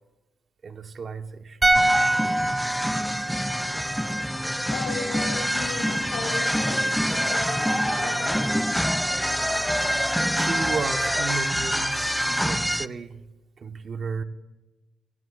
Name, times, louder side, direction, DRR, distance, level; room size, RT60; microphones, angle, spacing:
voice 1, 0.6-1.6 10.4-13.2 13.6-14.2, right 5 dB, 45° right, 1.2 m, -33 dB
sound 1, 1.6-4.8 5.1-5.2, right 1 dB, 20° right, 1.8 m, -25 dB
sound 2, 1.7-12.9, equal, ahead, 0.4 m, -26 dB
voice 2, 4.7-8.6, left 5 dB, 75° left, 6.5 m, -36 dB
30.0 x 17.5 x 2.5 m
cardioid pair, 90°, 0 cm